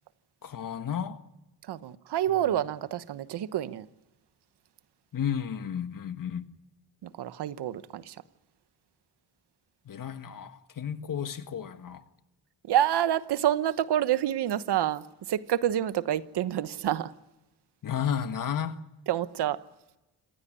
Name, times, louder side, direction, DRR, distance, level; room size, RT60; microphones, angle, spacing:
voice 1, 0.4-1.2 2.5-2.6 5.1-6.5 9.8-12.0 17.8-18.8, left 8 dB, 55° left, 1.6 m, -33 dB
voice 2, 1.7-3.9 7.0-8.1 12.7-17.1 19.1-19.6, right 11 dB, 80° right, 1.1 m, -28 dB
27.0 x 15.5 x 9.9 m
cardioid pair, 110°, 40 cm